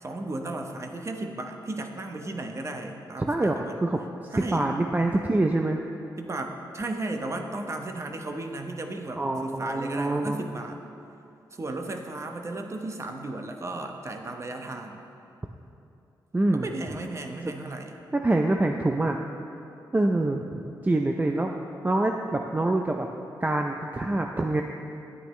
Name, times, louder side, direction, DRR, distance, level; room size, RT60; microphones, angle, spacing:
voice 1, 0.0-3.8 4.3-4.7 6.2-10.8 11.5-15.0 16.5-18.0, right 2 dB, 35° right, 4 dB, 0.9 m, -35 dB
voice 2, 3.3-4.0 4.4-5.8 9.2-10.4 16.3-16.7 17.4-17.5 18.1-19.2 19.9-21.5 21.8-23.1 23.4-24.6, right 2 dB, 20° right, 3 dB, 0.5 m, -25 dB
10.5 x 9.1 x 3.2 m, 2.7 s
cardioid pair, 70°, 8 cm